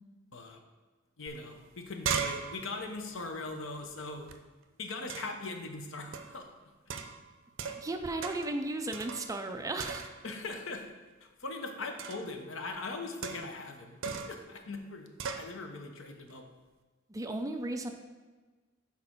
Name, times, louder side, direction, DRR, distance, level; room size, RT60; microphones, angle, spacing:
voice 1, 1.2-4.3 4.8-6.5 10.2-10.9 11.2-15.1 15.4-16.4, left 3 dB, 65° left, 4 dB, 0.8 m, -40 dB
sound 1, 1.3-1.4 1.6-4.4 5.1-5.5 6.1-6.4 6.9-7.9 8.2-8.6 8.9-9.5 9.8-10.4 12.0-12.3 13.2-13.6 14.0-14.4 15.2-15.5, right 6 dB, 65° right, 0.5 m, -38 dB
voice 2, 7.8-10.1 17.1-17.9, right 2 dB, 15° right, 6 dB, 0.4 m, -35 dB
6.4 x 4.1 x 4.5 m, 1.3 s
head